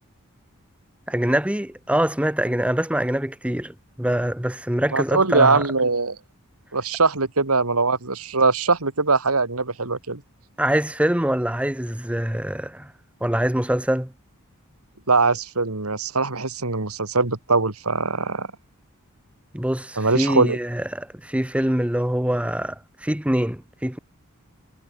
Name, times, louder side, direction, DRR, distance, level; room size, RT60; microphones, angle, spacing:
voice 1, 1.1-5.6 10.6-12.9 13.2-14.1 19.5-24.0, right 1 dB, 5° right, 0.9 m, -24 dB
voice 2, 4.9-6.2 6.7-10.2 15.1-18.5 20.0-20.6, right 3 dB, 85° right, 2.6 m, -21 dB
head